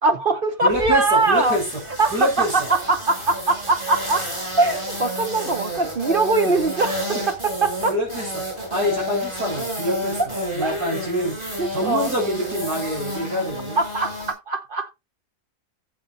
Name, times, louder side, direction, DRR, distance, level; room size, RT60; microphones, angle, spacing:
voice 1, 0.0-1.6 2.0-4.3 4.6-7.9 10.6-10.8 11.6-12.1 13.8-14.2 14.5-14.9, right 3 dB, 45° right, 0.8 m, -21 dB
voice 2, 0.6-1.6 2.1-2.7 6.4-6.5 7.1-7.2 7.9-8.4 8.7-10.2 10.5-11.4 11.7-13.8, equal, 90° right, 4.7 m, -25 dB
Fly Trapped, 0.7-14.3, equal, 15° right, 6.7 m, -31 dB
15.5 x 7.2 x 2.5 m
omnidirectional pair, 1.6 m